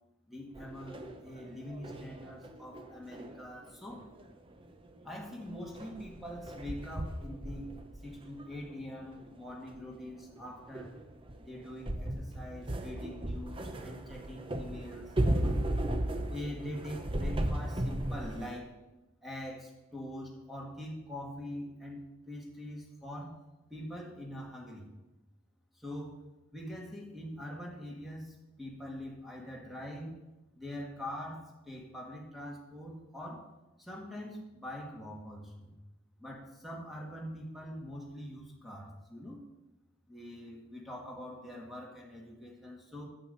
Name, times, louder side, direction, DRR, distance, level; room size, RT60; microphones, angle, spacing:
voice 1, 0.3-4.0 5.0-7.7 8.0-10.9 11.4-15.6 16.3-18.7 19.2-23.4 23.7-24.9 25.7-26.1 26.5-30.1 30.5-33.5 33.8-35.7 36.2-39.4 40.1-43.1, left 1 dB, ahead, -3 dB, 1.7 m, -43 dB
sound 1, 0.6-4.3 4.7-4.8 4.9-5.0 5.4-9.3 9.7-10.0 10.4-18.6, right 1 dB, 25° right, 0.7 m, -36 dB
8.8 x 7.6 x 5.5 m, 1.0 s
head